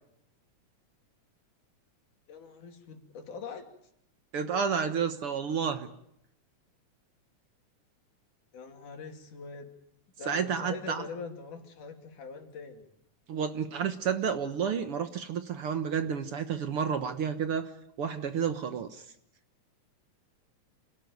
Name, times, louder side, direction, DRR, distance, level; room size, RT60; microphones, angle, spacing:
voice 1, 2.3-3.7 8.5-9.7 10.2-12.9, left 4 dB, 85° left, 4 dB, 4.3 m, -42 dB
voice 2, 4.3-5.9 10.3-11.0 13.3-17.7 18.0-19.0, right 7 dB, 60° right, 9 dB, 1.8 m, -30 dB
28.0 x 18.0 x 9.4 m, 0.76 s
omnidirectional pair, 3.5 m